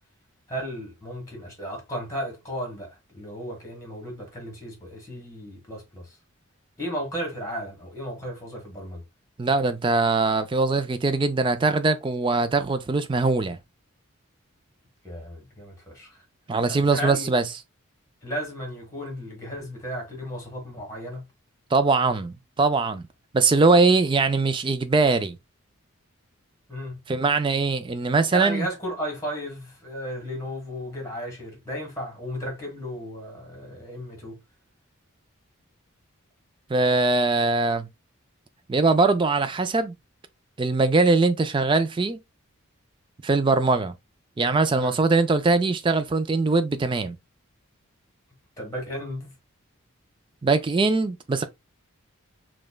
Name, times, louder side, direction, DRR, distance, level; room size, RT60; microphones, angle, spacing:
voice 1, 0.5-6.2 6.8-9.0 15.0-16.2 16.7-17.3 18.2-21.3 26.7-27.0 28.3-34.4 44.8-45.0 48.6-49.3, equal, 15° left, 1.4 m, -34 dB
voice 2, 9.4-13.6 16.5-17.4 21.7-23.0 23.3-25.4 27.1-28.7 36.7-37.9 38.7-39.9 40.6-42.2 43.2-43.9 44.4-47.2 50.4-51.5, right 3 dB, 20° right, 0.3 m, -21 dB
5.0 x 2.2 x 2.3 m
head